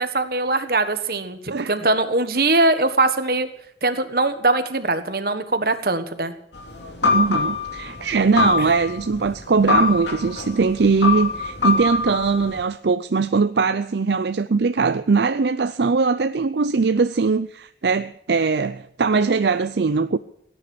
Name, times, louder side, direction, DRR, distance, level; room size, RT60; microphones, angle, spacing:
voice 1, 0.0-3.5 3.8-6.3, right 2 dB, 55° right, 1.4 m, -21 dB
sound 1, 6.5-12.6, left 4 dB, 80° left, 2.8 m, -24 dB
voice 2, 7.1-20.2, right 4 dB, 75° right, 0.5 m, -21 dB
17.5 x 9.9 x 8.4 m
head